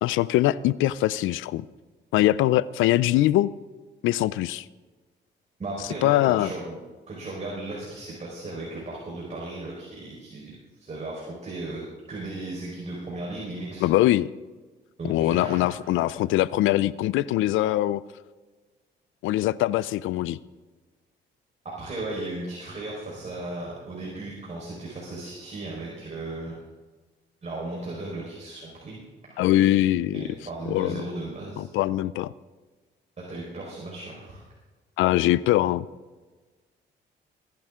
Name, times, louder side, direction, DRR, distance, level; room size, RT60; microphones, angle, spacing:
voice 1, 0.0-1.6 2.1-3.5 4.0-4.6 6.0-6.5 13.8-14.3 15.0-18.0 19.2-20.4 29.4-30.2 30.7-31.0 31.6-32.3 35.0-35.9, left 15 dB, 90° left, 19 dB, 0.4 m, -22 dB
voice 2, 5.6-6.8 7.1-11.8 12.1-13.9 15.0-16.1 21.6-26.6 27.4-29.0 29.3-29.5 30.1-31.7 33.2-34.4, right 2 dB, 35° right, -4 dB, 4.3 m, -36 dB
19.5 x 10.5 x 3.7 m, 1.3 s
cardioid pair, 90°, 20 cm